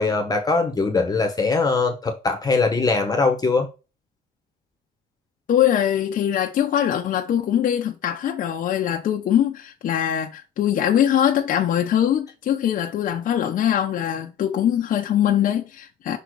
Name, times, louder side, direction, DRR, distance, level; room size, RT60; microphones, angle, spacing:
voice 1, 0.0-3.7, left 4 dB, 20° left, 1.3 m, -21 dB
voice 2, 5.5-16.2, left 10 dB, 55° left, 0.9 m, -22 dB
5.7 x 4.0 x 4.8 m
cardioid pair, 110°, 17 cm